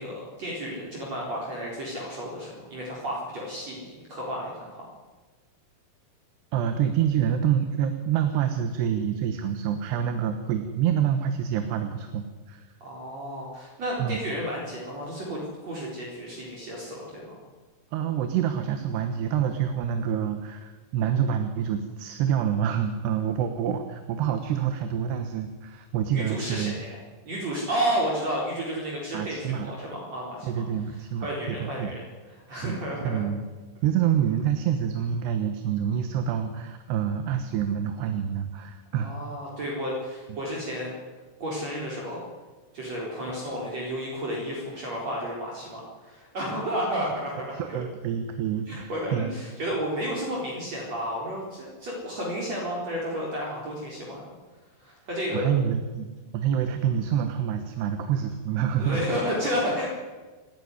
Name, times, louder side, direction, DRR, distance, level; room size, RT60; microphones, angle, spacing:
voice 1, 0.0-4.9 12.8-17.4 26.1-27.0 27.3-30.6 31.2-32.1 32.5-33.2 39.0-40.9 41.4-42.2 42.7-47.8 48.7-54.2 54.8-55.5 58.8-59.9, equal, 40° right, -4 dB, 5.2 m, -32 dB
voice 2, 6.5-12.7 14.0-14.2 17.9-26.8 29.1-29.7 30.4-31.9 32.6-32.8 33.0-33.4 33.8-39.1 40.3-40.4 47.5-49.3 55.3-56.1 56.3-59.0, right 9 dB, 85° right, 7 dB, 3.4 m, -27 dB
27.5 x 12.5 x 9.7 m, 1.3 s
omnidirectional pair, 4.6 m